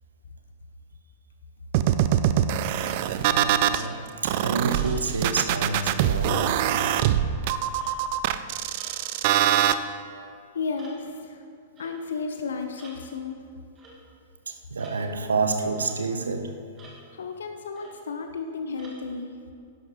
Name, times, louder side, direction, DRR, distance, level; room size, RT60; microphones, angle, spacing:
sound 1, 1.7-3.8 4.2-9.7, right 11 dB, 45° right, 0.4 m, -23 dB
sound 2, 2.7-3.2 3.7-4.2 4.7-5.1 5.8-6.0 6.8-7.0 7.8-8.0 8.8-9.0 9.8-10.0 10.8-11.0 11.8-12.0 12.8-13.0 13.8-14.0 14.8-15.0 15.8-16.0 16.8-17.0 17.8-18.0 18.8-19.0, right 2 dB, 20° right, 2.0 m, -48 dB
voice 1, 3.2-6.6 14.5-16.5, right 3 dB, 70° right, 7 dB, 0.8 m, -28 dB
voice 2, 10.5-11.4 11.8-13.4 17.1-19.3, left 4 dB, 65° left, 6 dB, 0.6 m, -33 dB
12.0 x 11.0 x 3.2 m, 2.4 s
figure-of-eight pair, 100°, 0 cm